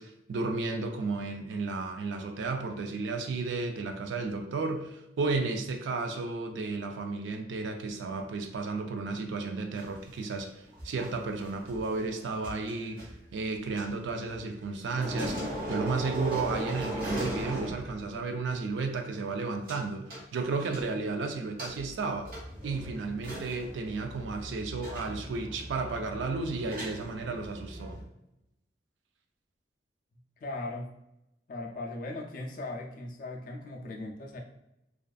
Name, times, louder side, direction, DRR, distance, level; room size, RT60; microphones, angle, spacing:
voice 1, 0.0-22.3 22.6-28.0, right 3 dB, 80° right, 5 dB, 0.4 m, -33 dB
sound 1, 9.8-14.6 14.9-18.3 18.5-18.6 19.7-19.8 20.1-21.1 21.6-28.0, right 1 dB, 50° right, 1.0 m, -39 dB
voice 2, 30.4-30.9 31.5-34.4, left 2 dB, 45° left, 1 dB, 0.3 m, -38 dB
2.5 x 2.3 x 2.3 m, 0.86 s
head